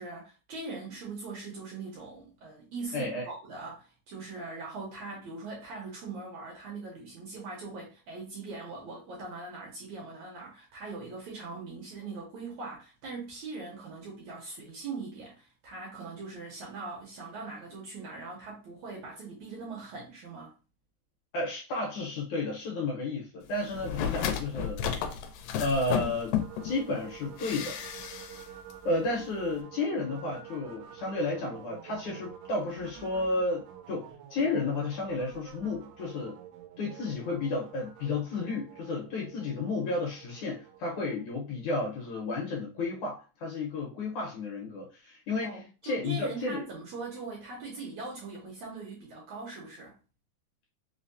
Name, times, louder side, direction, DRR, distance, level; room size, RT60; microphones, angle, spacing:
voice 1, 0.0-20.5 45.4-50.0, right 3 dB, 70° right, 1.8 m, -41 dB
voice 2, 2.9-3.3 21.3-24.8 25.6-26.4 26.6-27.8 28.8-36.4 36.8-46.6, left 2 dB, 70° left, 2.0 m, -32 dB
sound 1, 23.7-26.7 27.4-28.4 28.7-28.8, left 8 dB, 85° left, 2.3 m, -32 dB
sound 2, 25.7-42.0, right 10 dB, 90° right, 2.4 m, -49 dB
5.4 x 2.0 x 2.5 m
omnidirectional pair, 4.0 m